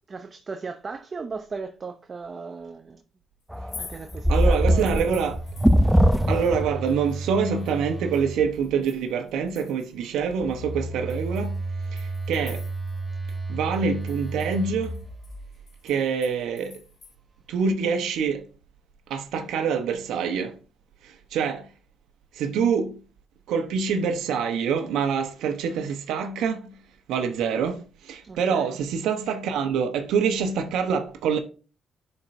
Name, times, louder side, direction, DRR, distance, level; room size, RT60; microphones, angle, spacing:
voice 1, 0.1-3.0 3.8-5.1 28.2-28.8, right 4 dB, 35° right, 0.7 m, -37 dB
sound 1, 3.5-6.6 6.9-10.1 10.5-10.6 11.1-13.0 13.3-13.4 13.7-17.1, left 5 dB, 45° left, 1.5 m, -48 dB
sound 2, 3.5-6.9, equal, ahead, 0.4 m, -21 dB
voice 2, 4.3-5.4 6.3-11.6 11.9-12.0 12.3-12.6 13.5-15.0 15.8-16.8 17.5-18.4 19.1-20.5 21.3-21.6 22.4-22.9 23.5-26.6 27.1-27.8 28.1-31.4, right 6 dB, 85° right, 1.0 m, -25 dB
Telephone, 5.0-9.0 10.2-15.9, right 3 dB, 20° right, 1.0 m, -34 dB
11.0 x 4.5 x 2.7 m
cardioid pair, 90°, 0 cm